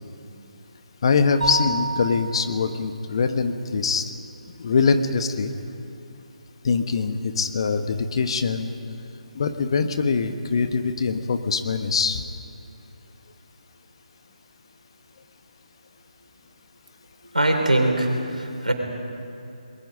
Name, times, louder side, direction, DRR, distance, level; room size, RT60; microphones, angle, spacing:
voice 1, 1.0-4.0 4.6-5.5 6.6-8.7 9.3-12.2, left 5 dB, 45° left, 8 dB, 1.2 m, -23 dB
Mallet percussion, 1.4-3.2, right 1 dB, 60° right, 1.4 m, -29 dB
voice 2, 17.3-18.7, right 1 dB, 80° right, 3 dB, 3.9 m, -22 dB
28.5 x 21.0 x 5.2 m, 2.8 s
figure-of-eight pair, 145°, 4 cm